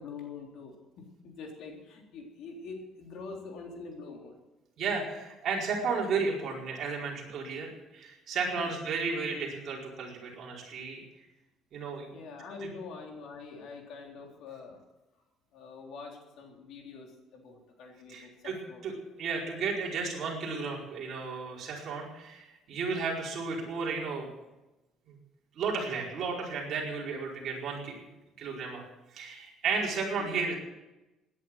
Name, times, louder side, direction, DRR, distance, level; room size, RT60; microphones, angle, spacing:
voice 1, 0.0-4.4 8.5-8.7 12.1-14.8 15.5-18.9 30.2-30.5, left 4 dB, 60° left, 1 dB, 3.7 m, -45 dB
voice 2, 4.8-11.0 11.7-12.1 18.1-18.6 18.8-18.9 19.2-24.3 25.1-25.2 25.5-28.0 28.4-28.8 29.1-30.5, right 4 dB, 45° right, -2 dB, 4.8 m, -33 dB
17.0 x 10.5 x 7.5 m, 1.0 s
cardioid pair, 170°, 0 cm